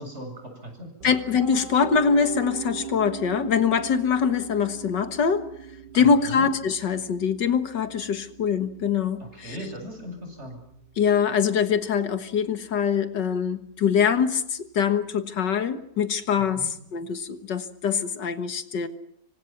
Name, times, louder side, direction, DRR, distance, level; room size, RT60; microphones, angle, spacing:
voice 1, 0.0-1.2 5.9-6.5 9.2-10.6 16.5-16.7, equal, 40° right, 4 dB, 8.2 m, -38 dB
voice 2, 1.0-5.5 5.9-9.6 11.0-18.9, left 6 dB, 80° left, 9 dB, 2.1 m, -24 dB
Piano, 1.0-12.9, right 8 dB, 75° right, 2.4 m, -41 dB
27.0 x 25.0 x 5.9 m, 0.76 s
omnidirectional pair, 1.9 m